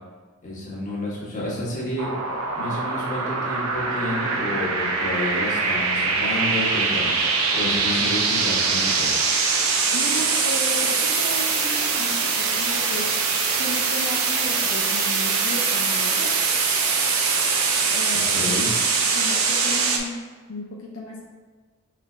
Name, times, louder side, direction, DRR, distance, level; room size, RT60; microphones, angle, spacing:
voice 1, 0.4-2.1 2.5-9.1 18.1-18.7, left 1 dB, 35° left, -6 dB, 1.3 m, -30 dB
sound 1, 2.0-20.0, right 4 dB, 75° right, 0.6 m, -23 dB
voice 2, 9.9-13.1 13.6-16.3 17.9-18.8 19.1-20.2 20.5-21.2, left 1 dB, 70° left, -3 dB, 0.5 m, -34 dB
5.4 x 3.2 x 2.4 m, 1.4 s
head